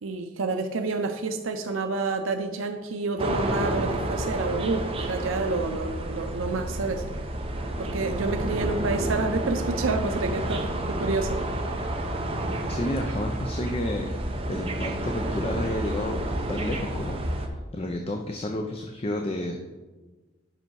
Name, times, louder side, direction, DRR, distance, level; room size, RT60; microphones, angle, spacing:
voice 1, 0.0-7.0 7.8-11.4, right 3 dB, 90° right, 6 dB, 0.5 m, -29 dB
sound 1, 3.2-17.5, right 1 dB, 30° right, 0.7 m, -30 dB
voice 2, 12.7-14.1 14.5-19.7, left 1 dB, 30° left, 4 dB, 0.5 m, -31 dB
7.9 x 5.5 x 4.7 m, 1.2 s
head